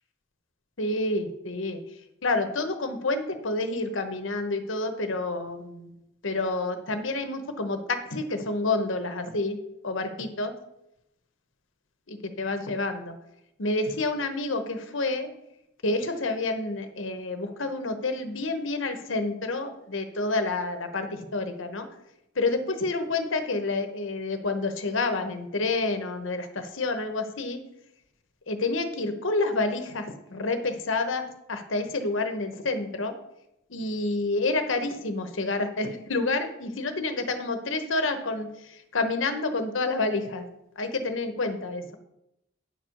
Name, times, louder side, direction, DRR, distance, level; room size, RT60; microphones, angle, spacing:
voice 1, 0.8-1.8 2.2-5.9 6.2-9.6 9.8-10.5 12.1-13.2 13.6-15.3 15.8-21.9 22.4-27.6 28.5-33.1 33.7-40.5 40.8-41.9, left 2 dB, 70° left, 7 dB, 1.0 m, -29 dB
9.6 x 4.6 x 6.4 m, 0.83 s
head